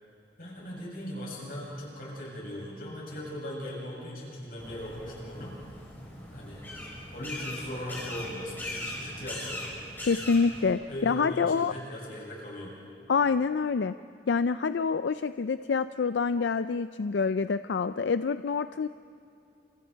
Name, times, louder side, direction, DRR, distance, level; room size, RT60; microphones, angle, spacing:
voice 1, 0.4-5.6 6.3-9.6 10.9-12.7, equal, 55° left, -4 dB, 7.4 m, -39 dB
sound 1, 4.6-10.7, left 1 dB, 10° left, 4.9 m, -40 dB
voice 2, 10.0-11.7 13.1-13.9 14.3-18.9, left 5 dB, 80° left, 12 dB, 0.4 m, -27 dB
30.0 x 28.0 x 4.6 m, 2.7 s
head